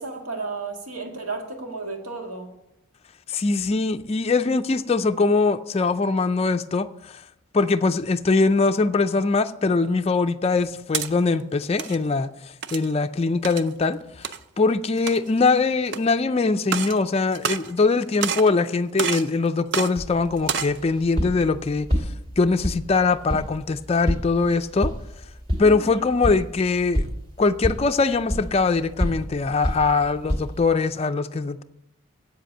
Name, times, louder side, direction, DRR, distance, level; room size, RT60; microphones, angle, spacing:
voice 1, 0.0-2.5 25.6-26.1, right 3 dB, 85° right, 1.9 m, -33 dB
voice 2, 3.3-7.2 7.5-21.9 22.4-24.9 25.6-27.0 27.4-31.6, left 3 dB, 25° left, 0.3 m, -22 dB
Gathering Stone Resources, 10.6-11.1 11.6-12.0 12.6-12.9 13.4-13.7 14.2-14.4 15.0-15.4 15.9-16.0 16.6-17.0 17.3-17.9 18.2-18.5 19.0-19.3 19.7-19.9 20.4-20.8, right 7 dB, 50° right, 0.5 m, -28 dB
sound 1, 19.9-30.7, equal, 25° right, 2.3 m, -30 dB
8.3 x 7.7 x 6.5 m
head